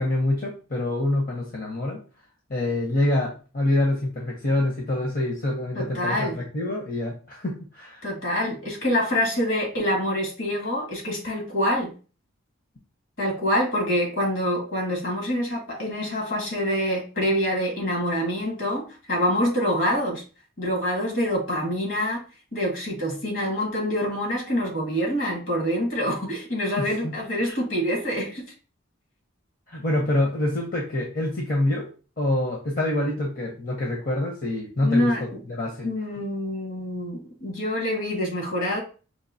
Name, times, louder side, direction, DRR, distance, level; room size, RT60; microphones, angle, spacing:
voice 1, 0.0-2.0 2.5-8.0 26.8-27.1 27.4-27.6 29.7-31.9 32.2-35.9, left 1 dB, 45° left, -1 dB, 0.8 m, -26 dB
voice 2, 5.8-6.4 8.0-11.9 13.2-20.2 20.6-22.2 22.5-28.5 34.8-35.4 35.8-38.8, equal, 65° left, 0 dB, 1.7 m, -26 dB
5.3 x 2.8 x 2.7 m, 0.36 s
head